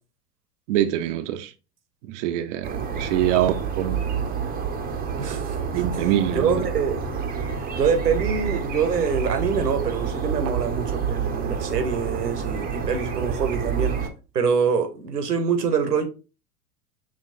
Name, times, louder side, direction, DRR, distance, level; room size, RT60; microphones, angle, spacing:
voice 1, 0.7-1.5 2.0-4.0 5.7-6.7, right 11 dB, 50° right, 0.6 m, -24 dB
sound 1, 2.6-14.1, right 6 dB, 20° right, 0.8 m, -28 dB
voice 2, 5.2-6.1 6.3-7.0 7.7-14.0 14.3-16.1, right 6 dB, 85° right, 0.9 m, -25 dB
6.3 x 3.0 x 2.6 m
figure-of-eight pair, 80°, 47 cm